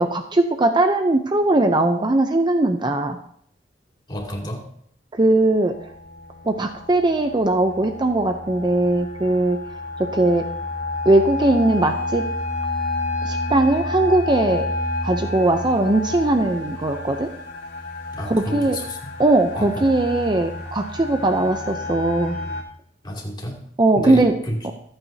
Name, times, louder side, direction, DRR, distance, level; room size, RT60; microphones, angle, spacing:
voice 1, 0.0-3.2 5.1-5.8 6.5-9.6 10.0-10.4 11.1-12.3 13.2-14.7 15.0-17.3 18.2-18.8 19.2-22.4 23.8-24.3 24.6-24.7, right 2 dB, 25° right, 6 dB, 0.6 m, -19 dB
voice 2, 4.1-4.7 18.1-19.1 19.5-19.9 23.0-23.6 23.9-24.7, equal, 25° left, -2 dB, 2.7 m, -30 dB
sound 1, 5.5-22.6, left 2 dB, 80° left, 2.5 m, -30 dB
25.0 x 8.9 x 2.8 m, 0.67 s
head